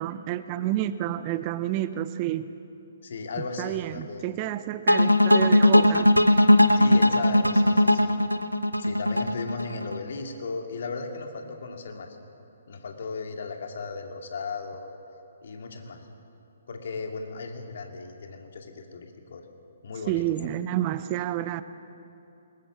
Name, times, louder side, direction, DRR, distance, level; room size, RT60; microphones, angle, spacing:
voice 1, 0.0-2.5 3.6-6.1 20.1-21.6, right 13 dB, 30° right, 13 dB, 0.6 m, -29 dB
voice 2, 3.0-4.3 6.7-8.1 8.8-12.1 12.7-15.0 15.4-16.0 16.7-19.4 19.8-20.6, left 4 dB, 55° left, 3 dB, 2.4 m, -36 dB
sound 1, 4.9-10.0, left 1 dB, 90° left, 0.9 m, -19 dB
21.5 x 20.0 x 7.5 m, 2.9 s
figure-of-eight pair, 130°, 0 cm